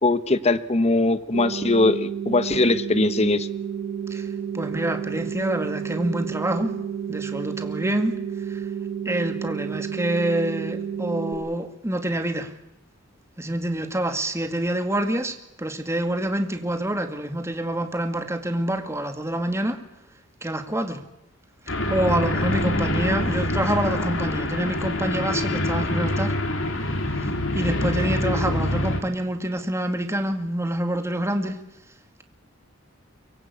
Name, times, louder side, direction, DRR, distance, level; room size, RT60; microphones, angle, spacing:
voice 1, 0.0-3.5, left 2 dB, 35° left, 1.1 m, -21 dB
sound 1, 1.3-11.3, right 8 dB, 75° right, 4.9 m, -31 dB
voice 2, 4.5-6.8 7.1-8.7 9.1-12.5 13.4-19.8 20.4-21.0 21.9-26.4 27.2-31.6, right 1 dB, 15° right, 2.3 m, -27 dB
sound 2, 21.7-29.0, left 1 dB, 70° left, 3.5 m, -25 dB
24.0 x 21.5 x 8.6 m
head